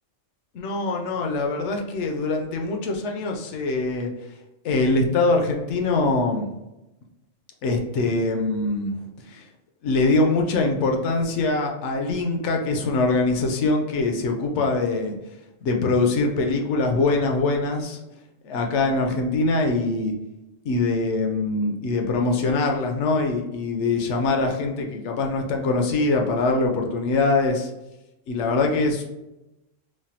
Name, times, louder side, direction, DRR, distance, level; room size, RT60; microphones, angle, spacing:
voice 1, 0.5-4.1 4.6-6.5 7.6-9.0 9.3-9.4 9.8-15.1 15.6-18.0 18.4-20.1 20.6-27.7 28.3-29.0, left 3 dB, 70° left, 3 dB, 0.8 m, -23 dB
3.2 x 2.2 x 2.7 m, 0.95 s
omnidirectional pair, 1.3 m